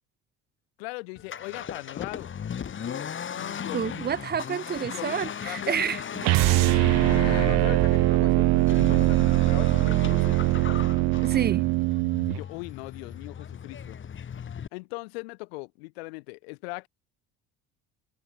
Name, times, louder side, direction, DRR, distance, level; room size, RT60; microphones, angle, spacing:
voice 1, 0.8-2.3 2.7-4.0 4.8-5.9 6.6-10.9 12.3-14.0 14.7-16.9, left 27 dB, 85° left, 5.8 m, -40 dB
Accelerating revving vroom, 1.2-14.7, left 8 dB, 40° left, 5.9 m, -37 dB
voice 2, 3.7-6.0 11.2-11.6, right 8 dB, 35° right, 0.9 m, -29 dB
sound 1, 5.1-7.7, left 13 dB, 60° left, 5.1 m, -38 dB
sound 2, 6.2-12.4, right 23 dB, 65° right, 0.6 m, -22 dB
supercardioid pair, 85°, 30 cm